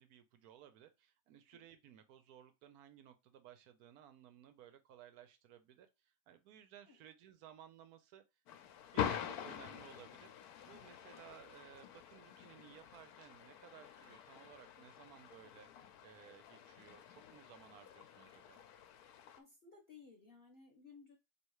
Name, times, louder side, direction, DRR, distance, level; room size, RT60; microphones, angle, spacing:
voice 1, 0.0-8.2 8.9-15.7 16.0-18.6, right 10 dB, 85° right, 1.2 m, -59 dB
voice 2, 1.3-1.7 6.9-7.0 19.4-21.2, left 5 dB, 45° left, 0.9 m, -59 dB
sound 1, 8.5-19.4, left 9 dB, 90° left, 1.1 m, -46 dB
3.2 x 2.9 x 4.6 m
omnidirectional pair, 1.6 m